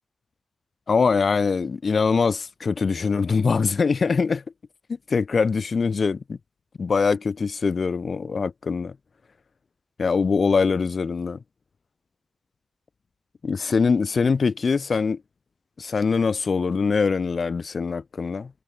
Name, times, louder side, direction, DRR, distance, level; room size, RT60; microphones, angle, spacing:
voice 1, 0.9-4.4 5.1-6.4 6.8-8.9 10.0-11.4 13.4-15.2 15.8-18.5, left 5 dB, 60° left, 4.6 m, -23 dB
cardioid pair, 70°, 0 cm